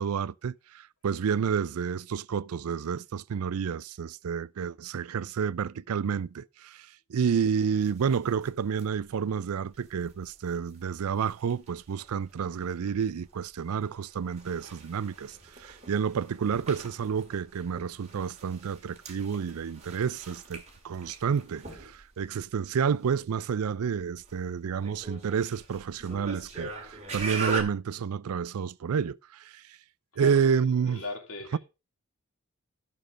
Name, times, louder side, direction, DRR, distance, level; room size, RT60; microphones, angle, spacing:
voice 1, 0.0-29.6 30.2-31.0 31.5-31.6, right 6 dB, 80° right, 0.4 m, -30 dB
sound 1, 7.8-27.6, right 4 dB, 30° right, 2.1 m, -42 dB
voice 2, 30.1-31.6, left 3 dB, 75° left, 2.8 m, -40 dB
11.0 x 6.5 x 5.1 m
head